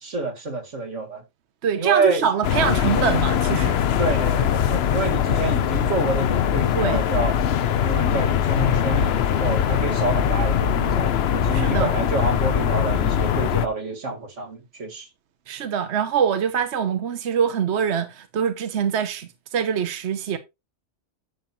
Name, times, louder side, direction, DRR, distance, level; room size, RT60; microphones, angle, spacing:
voice 1, 0.0-1.2 1.8-2.3 4.0-7.4 7.8-15.1, right 3 dB, 90° right, 2.4 m, -28 dB
voice 2, 1.6-3.8 6.7-7.0 11.5-11.9 15.5-20.4, right 7 dB, 70° right, 1.1 m, -24 dB
sound 1, 2.4-13.7, left 9 dB, 65° left, 0.9 m, -21 dB
11.0 x 7.2 x 2.8 m
omnidirectional pair, 1.2 m